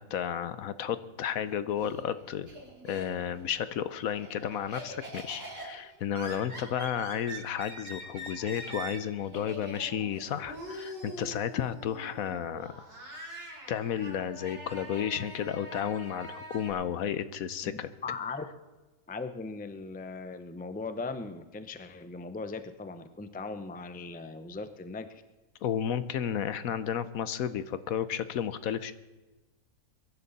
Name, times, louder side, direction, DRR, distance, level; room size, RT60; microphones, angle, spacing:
voice 1, 0.0-2.5 2.8-12.7 13.7-17.9 25.6-28.9, left 9 dB, 70° left, 14 dB, 1.1 m, -32 dB
Laughter, 1.3-3.4 3.8-16.7, right 1 dB, 40° right, 4.7 m, -44 dB
voice 2, 17.6-18.4 19.1-25.2, left 3 dB, 10° left, 10 dB, 0.5 m, -39 dB
23.0 x 11.0 x 4.1 m, 1.1 s
omnidirectional pair, 1.6 m